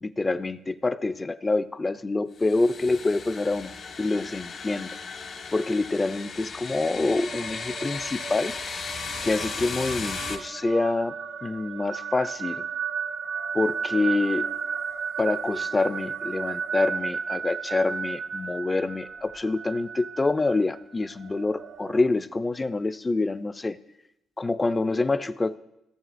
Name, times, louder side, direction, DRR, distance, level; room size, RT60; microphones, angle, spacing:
voice 1, 0.0-3.7 4.0-4.9 5.5-8.5 9.2-11.1 11.4-12.6 13.5-14.5 15.2-23.8 24.4-25.6, left 3 dB, 20° left, 13 dB, 0.4 m, -26 dB
sound 1, 2.4-10.4, left 5 dB, 60° left, 1.2 m, -36 dB
sound 2, 6.9-22.0, right 6 dB, 60° right, 0.6 m, -34 dB
16.5 x 7.2 x 2.5 m, 0.88 s
cardioid pair, 90°, 0 cm